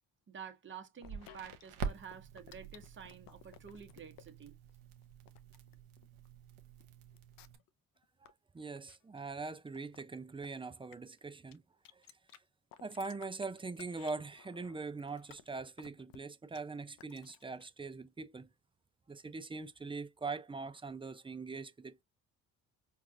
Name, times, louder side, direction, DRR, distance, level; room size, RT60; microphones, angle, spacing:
voice 1, 0.3-4.5, right 7 dB, 30° right, 1.1 m, -50 dB
sound 1, 1.0-1.6 1.9-4.2 4.7-6.3 6.8-6.9 7.1-7.7 8.0-8.3 8.7-9.2 9.7-10.0 10.4-10.5 10.9-11.2 11.5-11.6 11.8-12.4 12.7-16.2 16.5-16.6 17.0-17.6, left 11 dB, 65° left, 0.6 m, -57 dB
Crackle, 1.0-7.6, right 5 dB, 85° right, 0.9 m, -46 dB
voice 2, 8.2-11.6 11.9-12.0 12.8-18.5 19.1-22.0, right 4 dB, 15° right, 0.4 m, -42 dB
4.6 x 2.4 x 2.7 m
supercardioid pair, 70°, 37 cm